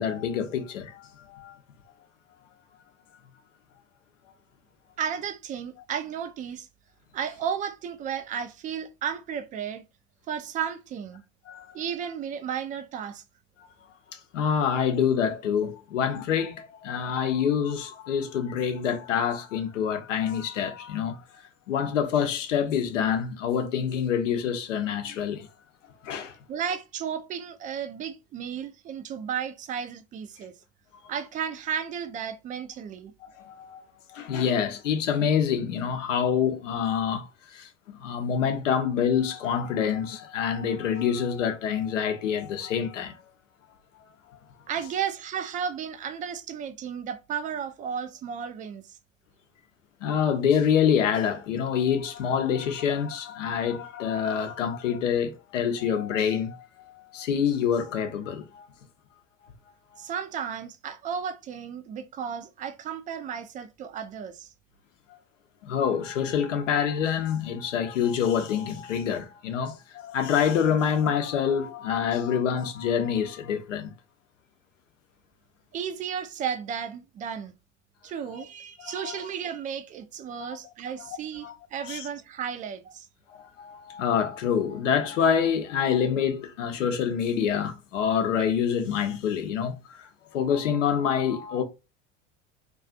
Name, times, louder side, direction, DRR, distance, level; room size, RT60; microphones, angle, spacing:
voice 1, 0.0-1.5 11.5-11.7 14.1-21.2 21.7-25.5 26.0-26.4 33.2-33.8 34.1-37.3 37.5-37.7 38.0-43.1 50.0-58.7 65.7-73.9 78.8-79.2 80.5-80.6 81.4-81.5 81.8-82.1 83.3-91.6, left 8 dB, 75° left, 0.7 m, -26 dB
voice 2, 5.0-6.7 7.1-9.8 10.3-11.2 11.7-13.2 26.5-30.5 31.1-33.1 44.7-49.0 60.0-64.5 75.7-77.5 78.0-83.1, right 8 dB, 20° right, 0.3 m, -33 dB
2.4 x 2.4 x 2.4 m
hypercardioid pair, 75°, 37 cm